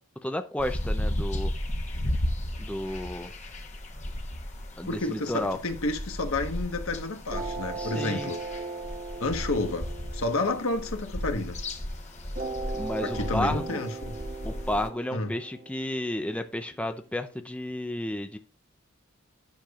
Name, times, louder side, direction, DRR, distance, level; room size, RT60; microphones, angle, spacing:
voice 1, 0.2-1.5 2.6-3.3 4.8-5.6 7.8-8.3 12.8-13.8 14.4-18.4, left 1 dB, 5° left, 0.4 m, -32 dB
sound 1, 0.6-14.9, left 1 dB, 35° left, 1.0 m, -34 dB
voice 2, 4.9-8.4 9.2-11.6 13.0-14.1 15.1-15.3, left 2 dB, 80° left, 1.2 m, -30 dB
sound 2, 7.3-11.7 12.4-17.3, right 3 dB, 40° right, 0.9 m, -38 dB
10.5 x 6.5 x 2.4 m
head